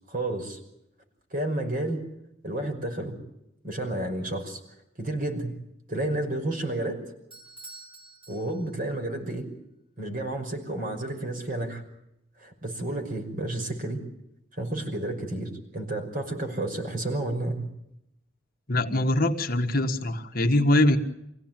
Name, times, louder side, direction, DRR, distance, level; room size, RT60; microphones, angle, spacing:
voice 1, 0.1-0.6 1.3-2.0 2.4-3.2 3.6-4.6 5.0-5.5 5.9-7.0 8.3-9.5 10.0-11.8 12.4-14.0 14.6-17.7, right 1 dB, 45° right, 5 dB, 5.7 m, -31 dB
Bell / Doorbell, 7.3-9.0, right 2 dB, 30° right, 4.6 m, -48 dB
voice 2, 18.7-21.0, left 1 dB, 45° left, 5 dB, 1.7 m, -23 dB
26.5 x 17.0 x 9.1 m, 0.83 s
head